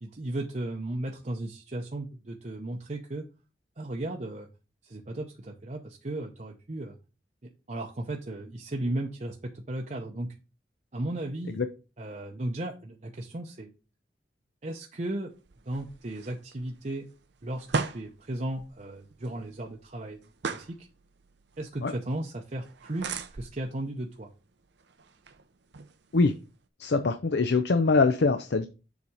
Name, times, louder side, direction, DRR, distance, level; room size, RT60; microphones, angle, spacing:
voice 1, 0.0-3.2 3.8-4.5 4.8-7.0 7.7-10.3 10.9-11.6 12.0-13.7 14.6-15.3 15.7-17.1 17.4-20.3 20.5-20.9 21.6-24.3, right 1 dB, 40° right, 1 dB, 0.7 m, -35 dB
sound 1, 15.3-26.7, right 4 dB, 75° right, 0.7 m, -40 dB
voice 2, 26.8-28.7, left 3 dB, 70° left, 9 dB, 0.6 m, -23 dB
7.2 x 4.1 x 4.8 m, 0.32 s
head